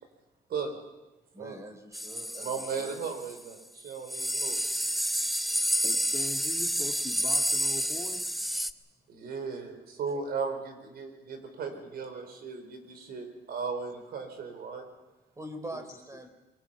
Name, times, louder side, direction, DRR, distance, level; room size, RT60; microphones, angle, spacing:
voice 1, 1.3-3.0 15.3-16.3, right 1 dB, 20° right, 8 dB, 3.8 m, -43 dB
sound 1, 1.9-3.4 3.8-3.9 4.1-8.7, equal, ahead, 0.9 m, -29 dB
voice 2, 2.3-4.6 9.1-14.8, right 5 dB, 70° right, 6 dB, 5.0 m, -36 dB
voice 3, 5.8-8.3, left 3 dB, 25° left, 1 dB, 2.1 m, -41 dB
24.0 x 23.5 x 6.1 m, 1.1 s
cardioid pair, 110°, 17 cm